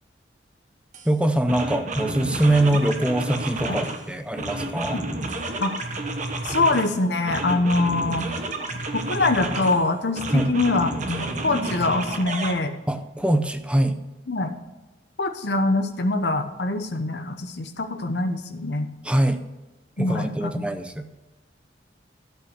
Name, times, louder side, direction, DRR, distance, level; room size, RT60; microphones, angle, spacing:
sound 1, 0.9-1.1 1.5-4.0 4.4-6.9 7.3-9.8 10.2-12.5, right 2 dB, 45° right, 1.2 m, -30 dB
voice 1, 1.0-5.0 10.3-10.5 12.9-14.0 19.0-19.4 20.0-21.1, right 1 dB, 5° right, 9 dB, 0.6 m, -23 dB
voice 2, 6.4-8.3 8.9-12.7 14.3-14.5 15.2-18.9 20.0-20.6, left 2 dB, 65° left, 7 dB, 0.9 m, -24 dB
13.0 x 5.6 x 6.5 m, 1.1 s
head